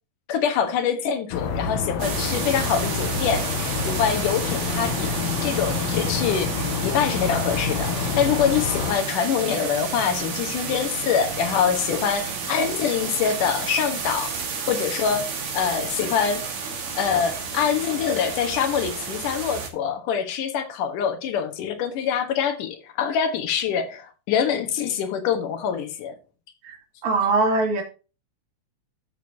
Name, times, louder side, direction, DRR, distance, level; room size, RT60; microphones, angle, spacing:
voice 1, 0.3-14.3 14.7-15.3 15.5-16.5 17.0-26.2, left 7 dB, 85° left, 2.9 m, -25 dB
sound 1, 1.3-9.0, left 6 dB, 70° left, 2.0 m, -28 dB
sound 2, 2.0-19.7, right 5 dB, 50° right, 2.5 m, -31 dB
voice 2, 27.0-27.8, right 3 dB, 65° right, 3.6 m, -21 dB
13.5 x 6.3 x 2.8 m
omnidirectional pair, 3.6 m